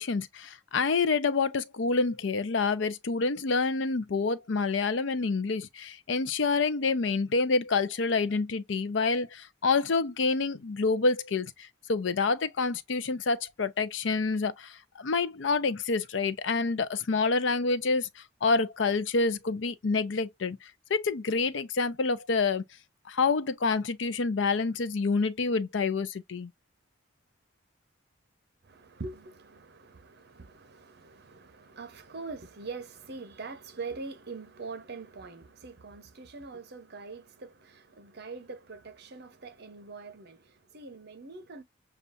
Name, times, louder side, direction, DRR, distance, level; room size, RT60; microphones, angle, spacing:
voice 1, 0.0-22.6 23.1-26.5, left 4 dB, 70° left, 0.5 m, -28 dB
voice 2, 28.6-41.6, right 4 dB, 55° right, 0.8 m, -43 dB
6.8 x 2.4 x 2.5 m
head